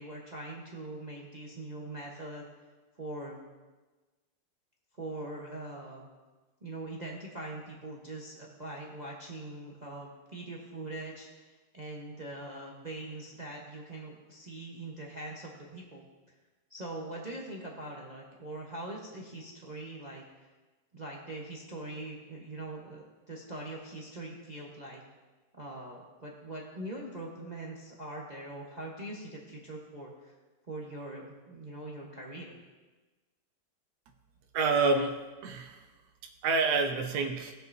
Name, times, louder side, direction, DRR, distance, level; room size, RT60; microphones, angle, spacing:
voice 1, 0.0-2.4 3.0-3.4 5.0-6.1 6.6-16.0 16.7-20.5 20.9-25.0 25.6-30.3 30.7-32.6, right 2 dB, 30° right, -2 dB, 1.0 m, -42 dB
voice 2, 34.5-35.9 36.4-37.5, right 4 dB, 65° right, 4 dB, 1.3 m, -28 dB
18.5 x 6.5 x 2.7 m, 1.2 s
omnidirectional pair, 1.9 m